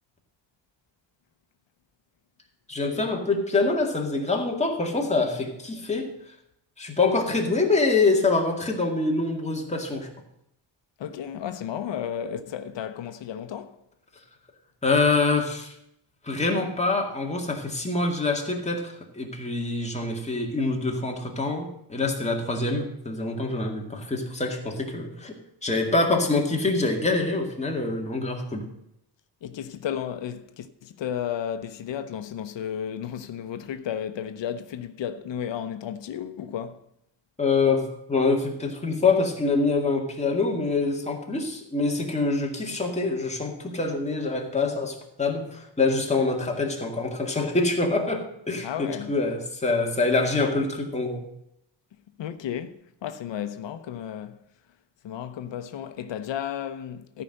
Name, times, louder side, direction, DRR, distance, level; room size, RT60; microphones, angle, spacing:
voice 1, 2.7-6.1 6.8-10.1 14.8-15.7 16.2-25.3 25.6-28.6 37.4-51.3, left 3 dB, 15° left, 2.1 m, -25 dB
voice 2, 11.0-13.8 29.4-36.8 48.6-49.1 52.2-54.4 55.0-57.2, left 9 dB, 80° left, 0.9 m, -33 dB
13.5 x 5.7 x 7.9 m
wide cardioid pair, 140°, 43 cm